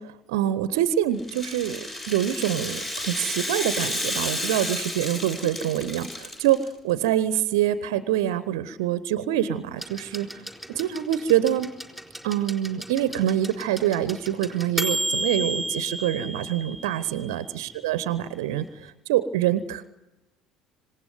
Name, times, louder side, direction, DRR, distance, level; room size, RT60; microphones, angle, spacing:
voice 1, 0.0-10.3 10.7-11.7 12.2-19.9, right 11 dB, 65° right, 15 dB, 0.9 m, -25 dB
Rattle (instrument), 1.2-6.7, left 1 dB, 20° left, 7.2 m, -31 dB
sound 1, 9.8-17.6 18.7-18.8, right 1 dB, ahead, 4.1 m, -33 dB
26.5 x 18.5 x 9.4 m, 1.0 s
figure-of-eight pair, 60°, 2 cm